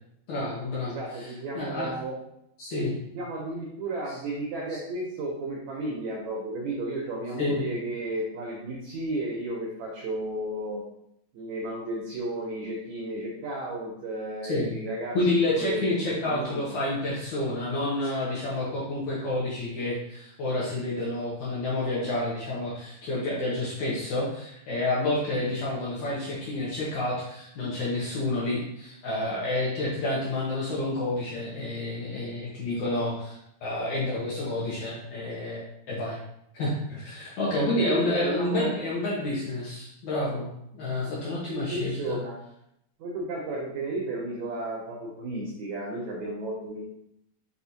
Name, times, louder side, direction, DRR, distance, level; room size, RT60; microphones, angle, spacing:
voice 1, 0.3-1.9 2.6-2.9 7.4-7.6 14.4-14.7 15.1-36.2 36.5-42.2, left 2 dB, 75° left, -6 dB, 1.7 m, -29 dB
voice 2, 0.8-2.2 3.1-10.8 11.3-15.2 15.4-16.6 37.4-38.8 41.0-41.1 41.5-42.4 43.0-46.9, right 1 dB, 90° right, -3 dB, 1.6 m, -33 dB
5.8 x 2.5 x 2.6 m, 0.77 s
omnidirectional pair, 4.1 m